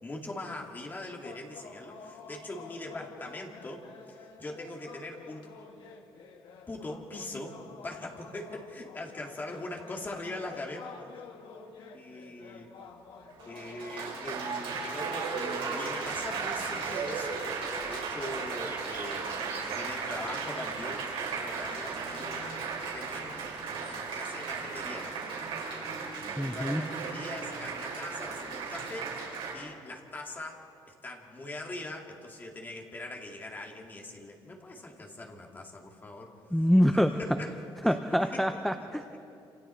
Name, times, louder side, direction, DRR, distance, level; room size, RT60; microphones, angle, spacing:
voice 1, 0.0-3.8 4.1-5.5 6.7-10.9 11.9-12.8 13.5-17.4 17.8-19.4 19.7-22.6 22.9-25.2 25.8-29.2 29.5-36.3 36.9-37.6 37.8-38.0 38.3-38.5 38.9-39.2, left 2 dB, 20° left, 0 dB, 2.3 m, -42 dB
sound 1, 1.2-16.1, left 5 dB, 65° left, 2.2 m, -50 dB
Applause, 13.3-29.5, right 5 dB, 80° right, 4.8 m, -35 dB
sound 2, 16.1-24.0, right 4 dB, 30° right, 2.3 m, -52 dB
voice 2, 26.4-26.8 36.5-37.2 37.8-39.0, equal, ahead, 7 dB, 0.6 m, -25 dB
28.0 x 27.5 x 4.5 m, 2.6 s
cardioid pair, 170°, 9 cm